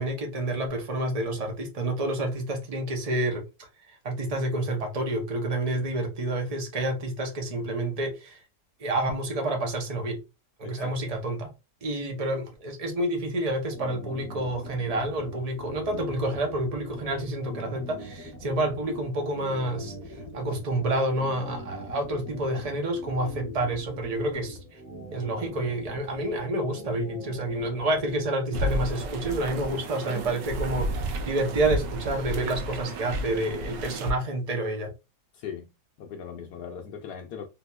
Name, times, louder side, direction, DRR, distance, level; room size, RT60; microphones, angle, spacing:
voice 1, 0.0-8.4 8.8-10.2 10.6-11.5 11.8-24.8 25.1-34.9, right 1 dB, 70° right, 0.3 m, -29 dB
voice 2, 10.6-11.1 29.7-29.8 35.3-35.7 36.0-37.5, left 7 dB, 75° left, 1.1 m, -39 dB
sound 1, 13.5-28.2, equal, 35° right, 1.7 m, -42 dB
sound 2, 28.5-34.1, right 1 dB, 85° right, 1.3 m, -32 dB
3.6 x 2.7 x 2.3 m
omnidirectional pair, 1.8 m